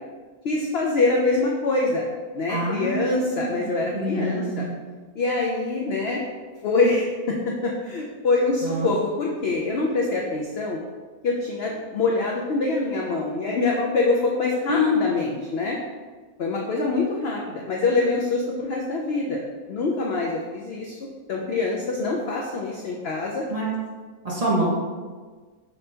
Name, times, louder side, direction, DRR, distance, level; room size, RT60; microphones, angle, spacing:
voice 1, 0.4-2.0 2.3-4.6 5.2-6.2 6.6-7.4 7.6-10.8 11.2-15.8 16.4-19.4 19.7-21.0 21.3-23.5, left 3 dB, 70° left, -1 dB, 0.5 m, -24 dB
voice 2, 2.5-3.6 3.9-4.8 8.6-8.9 14.7-14.9 23.5-23.7 24.2-24.6, equal, 35° right, -7 dB, 0.7 m, -26 dB
6.0 x 3.2 x 2.8 m, 1.4 s
omnidirectional pair, 1.6 m